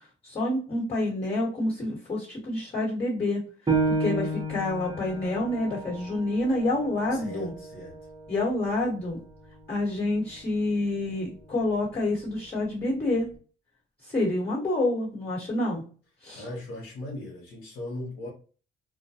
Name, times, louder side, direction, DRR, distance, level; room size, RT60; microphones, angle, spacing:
voice 1, 0.2-3.4 3.9-7.5 8.3-9.2 9.7-13.3 14.0-15.8 16.2-16.4, left 2 dB, 30° left, -2 dB, 1.3 m, -28 dB
Piano, 3.7-8.8 9.3-9.4 10.0-10.5, right 3 dB, 20° right, 0.7 m, -32 dB
voice 2, 7.1-7.9 16.3-18.3, left 1 dB, 90° left, -3 dB, 0.9 m, -38 dB
2.2 x 2.2 x 2.7 m, 0.37 s
cardioid pair, 90°, 20 cm